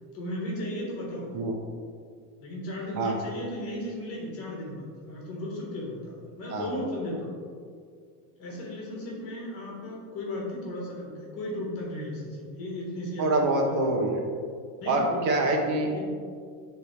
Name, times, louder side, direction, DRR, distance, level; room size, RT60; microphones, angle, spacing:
voice 1, 0.1-1.3 2.4-7.3 8.4-13.6 14.8-15.2 15.9-16.0, left 1 dB, 30° left, -3 dB, 1.4 m, -35 dB
voice 2, 13.2-14.2 14.9-15.9, right 2 dB, 60° right, 1 dB, 1.1 m, -25 dB
10.0 x 3.5 x 3.2 m, 2.1 s
cardioid pair, 175°, 47 cm